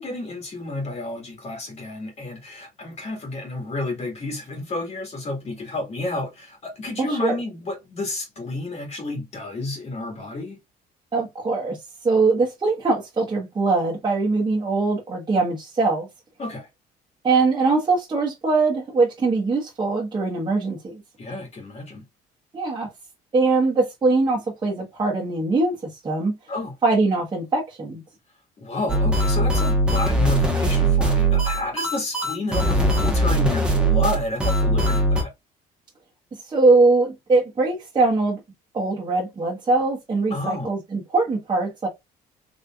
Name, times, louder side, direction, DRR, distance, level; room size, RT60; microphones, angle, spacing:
voice 1, 0.0-10.6 16.4-16.7 21.2-22.0 26.5-26.7 28.6-35.3 40.3-40.7, left 2 dB, 40° left, 1.9 m, -30 dB
voice 2, 7.0-7.4 11.1-11.8 12.0-16.1 17.2-21.0 22.5-22.9 23.3-25.8 26.0-26.4 26.8-28.0 36.5-38.4 38.7-41.9, right 3 dB, 25° right, 1.3 m, -22 dB
sound 1, 28.9-35.2, right 1 dB, 5° right, 1.3 m, -20 dB
4.1 x 3.3 x 2.4 m
cardioid pair, 110°, 17 cm